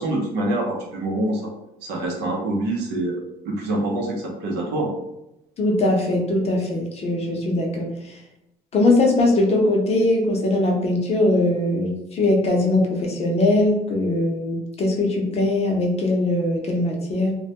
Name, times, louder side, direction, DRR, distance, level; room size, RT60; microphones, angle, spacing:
voice 1, 0.0-1.5 1.8-4.9, right 1 dB, 85° right, 0 dB, 0.7 m, -25 dB
voice 2, 5.6-8.2 8.7-17.4, left 2 dB, 40° left, 0 dB, 0.6 m, -21 dB
2.1 x 2.1 x 2.8 m, 0.88 s
cardioid pair, 110°, 17 cm